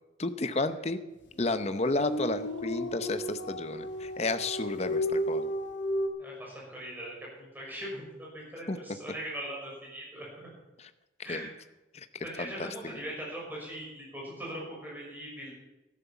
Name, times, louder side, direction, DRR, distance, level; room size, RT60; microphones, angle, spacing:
voice 1, 0.2-1.0 1.4-5.5 8.7-8.8 10.8-10.9 11.2-11.5 11.9-13.0, left 2 dB, 35° left, 10 dB, 0.7 m, -32 dB
sound 1, 1.3-6.1, equal, 80° left, 2.0 m, -33 dB
voice 2, 6.2-7.1 7.5-10.5 11.2-11.5 12.2-15.5, equal, 10° right, -4 dB, 6.0 m, -40 dB
12.5 x 11.0 x 7.0 m, 1.1 s
head